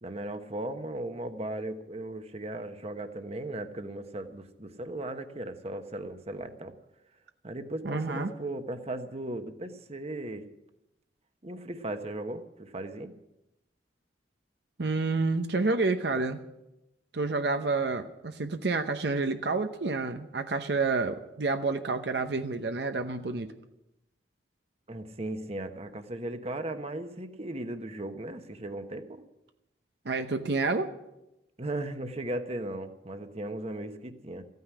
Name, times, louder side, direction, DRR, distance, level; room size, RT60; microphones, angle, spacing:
voice 1, 0.0-6.7 7.4-10.5 11.4-13.1 24.9-29.2 31.6-34.4, right 1 dB, 35° right, 8 dB, 1.2 m, -37 dB
voice 2, 7.8-8.3 14.8-16.4 17.1-23.5 30.0-30.9, right 3 dB, 65° right, 7 dB, 0.9 m, -29 dB
15.0 x 9.4 x 9.8 m, 0.90 s
head